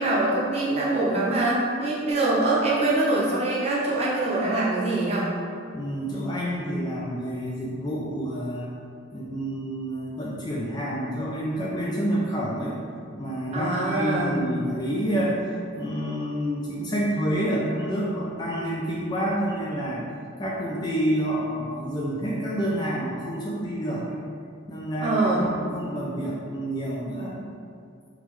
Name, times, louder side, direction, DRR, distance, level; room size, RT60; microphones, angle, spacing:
voice 1, 0.0-5.3 13.5-14.3 25.0-25.5, right 2 dB, 30° right, -7 dB, 0.7 m, -24 dB
voice 2, 5.7-8.7 9.1-12.8 13.2-20.0 20.4-24.2 24.7-27.4, equal, 20° left, -5 dB, 0.3 m, -28 dB
3.6 x 3.0 x 3.0 m, 2.3 s
head